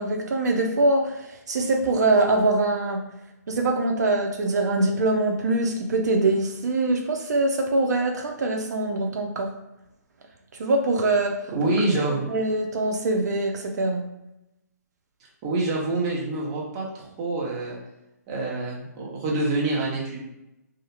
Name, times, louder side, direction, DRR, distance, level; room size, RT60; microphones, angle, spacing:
voice 1, 0.0-3.0 3.5-9.5 10.6-11.5 11.7-11.8 12.3-14.0, right 2 dB, 70° right, 2 dB, 0.4 m, -23 dB
voice 2, 11.5-12.3 15.4-17.8 18.3-20.2, right 2 dB, 25° right, -4 dB, 0.6 m, -26 dB
2.4 x 2.0 x 2.9 m, 0.90 s
hypercardioid pair, 165°, 9 cm